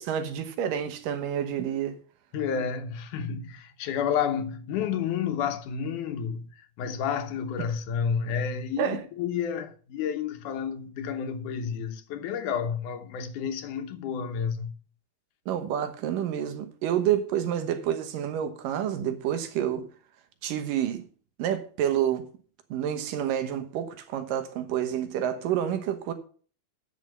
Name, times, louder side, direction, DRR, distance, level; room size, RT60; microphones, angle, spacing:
voice 1, 0.0-2.0 8.8-9.0 15.5-19.9 20.4-21.0 21.4-22.3 22.7-26.1, right 10 dB, 85° right, 2.8 m, -28 dB
voice 2, 2.3-6.5 6.8-14.7, left 7 dB, 75° left, 2.4 m, -30 dB
9.3 x 6.8 x 6.6 m
omnidirectional pair, 3.8 m